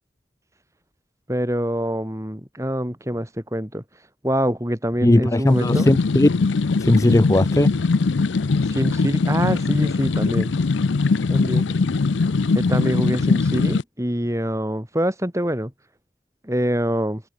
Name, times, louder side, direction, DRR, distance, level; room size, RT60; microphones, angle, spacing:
voice 1, 1.3-3.8 4.2-5.9 8.6-10.5 11.3-11.7 12.5-15.7 16.4-17.2, equal, 15° right, 4.3 m, -25 dB
voice 2, 5.0-6.3 6.8-7.7, left 1 dB, 15° left, 0.4 m, -17 dB
sound 1, 5.5-13.8, left 4 dB, 85° left, 0.6 m, -21 dB
head